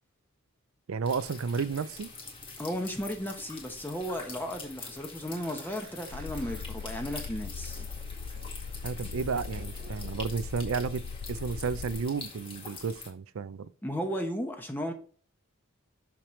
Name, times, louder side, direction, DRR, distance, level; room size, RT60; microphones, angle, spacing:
voice 1, 0.9-2.1 8.8-11.0 11.3-13.7, right 5 dB, 70° right, 0.4 m, -32 dB
sound 1, 1.0-13.1, left 4 dB, 25° left, 1.8 m, -45 dB
voice 2, 2.6-7.8 13.8-14.9, equal, 10° left, 0.8 m, -35 dB
sound 2, 5.4-10.6, right 3 dB, 45° right, 1.3 m, -54 dB
sound 3, 6.1-12.0, left 5 dB, 85° left, 0.4 m, -40 dB
6.5 x 5.9 x 3.1 m
head